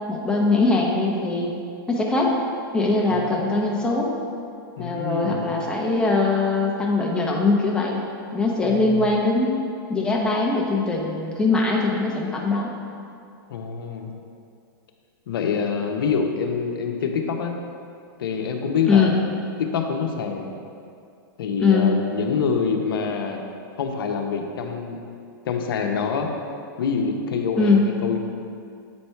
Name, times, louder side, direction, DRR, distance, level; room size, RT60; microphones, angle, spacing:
voice 1, 0.0-1.5 1.9-2.4 2.7-4.1 4.8-8.0 8.3-9.6 9.9-12.7 18.9-19.1 21.6-21.9 27.6-27.8, left 3 dB, 5° left, -2 dB, 1.0 m, -21 dB
voice 2, 3.1-3.5 4.8-5.7 8.6-9.0 13.5-14.1 15.3-17.6 18.2-19.1 19.6-20.5 21.4-23.4 23.8-25.0 25.4-26.3 26.8-28.2, left 6 dB, 75° left, 3 dB, 0.9 m, -26 dB
8.6 x 4.2 x 4.6 m, 2.4 s
hypercardioid pair, 130°, 12 cm